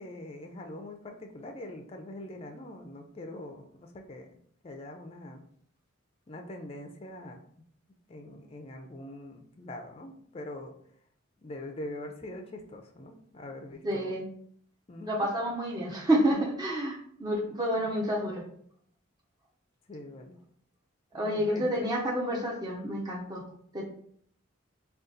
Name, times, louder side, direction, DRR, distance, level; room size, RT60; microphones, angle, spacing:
voice 1, 0.0-4.3 4.6-5.4 6.3-7.4 8.1-10.7 11.4-14.1 14.9-15.3 17.8-17.9 19.9-20.4 21.1-21.9, left 1 dB, 30° left, 3 dB, 0.4 m, -43 dB
voice 2, 13.8-14.2 15.1-18.4 21.1-23.4 23.7-23.8, right 1 dB, 20° right, -2 dB, 0.7 m, -29 dB
3.8 x 2.4 x 3.8 m, 0.64 s
head